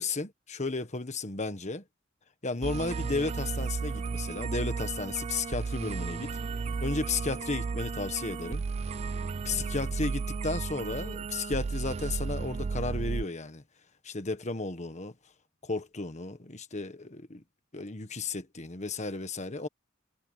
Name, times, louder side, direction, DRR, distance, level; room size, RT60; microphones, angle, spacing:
voice 1, 0.0-1.8 2.4-6.3 6.8-8.6 9.4-13.6 14.0-15.1 15.6-17.4 17.7-19.7, left 3 dB, 35° left, 1.5 m, -34 dB
sound 1, 2.6-13.2, right 4 dB, 35° right, 0.3 m, -34 dB
head